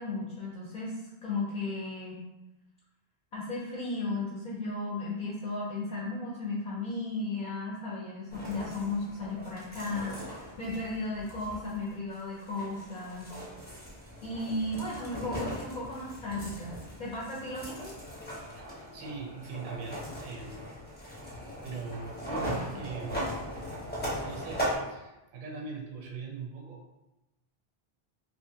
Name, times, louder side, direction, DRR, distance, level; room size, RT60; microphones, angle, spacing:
voice 1, 0.0-2.2 3.3-13.3 14.2-17.9 22.4-22.6, left 2 dB, 55° left, -6 dB, 0.6 m, -35 dB
sound 1, 8.3-24.8, equal, 10° left, 0.6 m, -39 dB
voice 2, 18.9-20.7 21.2-23.2 24.2-26.8, right 4 dB, 60° right, 0 dB, 0.6 m, -41 dB
2.8 x 2.4 x 2.6 m, 0.97 s
omnidirectional pair, 1.0 m